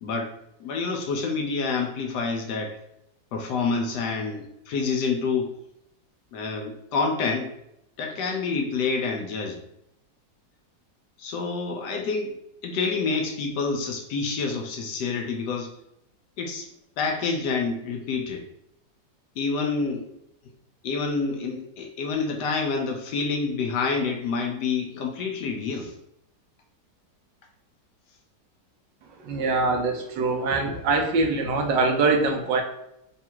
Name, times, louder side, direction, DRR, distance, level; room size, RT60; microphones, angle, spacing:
voice 1, 0.0-2.8 3.3-5.5 6.3-7.5 8.0-9.6 11.2-12.3 12.6-15.7 16.4-16.7 17.0-18.5 19.4-20.1 20.8-25.9, left 4 dB, 75° left, 3 dB, 1.1 m, -28 dB
voice 2, 29.2-32.6, right 3 dB, 80° right, 4 dB, 1.3 m, -23 dB
3.4 x 2.4 x 4.4 m, 0.80 s
omnidirectional pair, 1.9 m